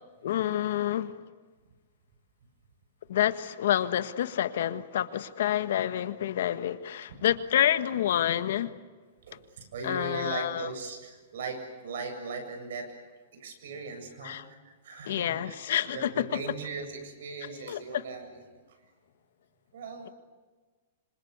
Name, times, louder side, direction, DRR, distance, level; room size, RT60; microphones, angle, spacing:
voice 1, 0.2-1.2 3.1-8.7 9.8-10.7 14.2-14.4 15.1-16.4 17.7-18.0, left 11 dB, 65° left, 1.6 m, -28 dB
voice 2, 9.3-12.9 13.3-15.5 15.9-18.6 19.7-20.1, right 4 dB, 70° right, 7.6 m, -39 dB
27.0 x 27.0 x 8.2 m
supercardioid pair, 165°, 0 cm